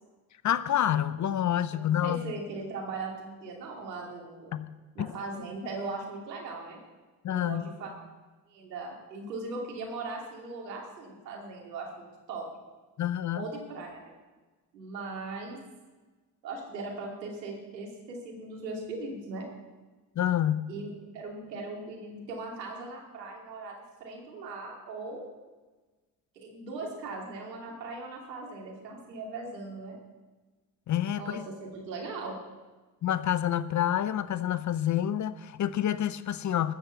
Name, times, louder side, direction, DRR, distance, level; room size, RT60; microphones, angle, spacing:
voice 1, 0.4-2.3 4.5-4.7 5.0-5.1 7.2-7.7 13.0-13.5 20.2-20.7 30.9-31.4 33.0-36.7, left 11 dB, 35° left, 0.7 m, -28 dB
voice 2, 1.7-4.5 4.9-6.8 7.3-7.9 8.5-12.5 13.3-14.1 14.7-15.6 16.4-19.5 20.7-25.3 26.3-30.0 31.2-32.3, right 3 dB, 85° right, 2.7 m, -39 dB
13.5 x 7.1 x 7.9 m
hypercardioid pair, 50°, 49 cm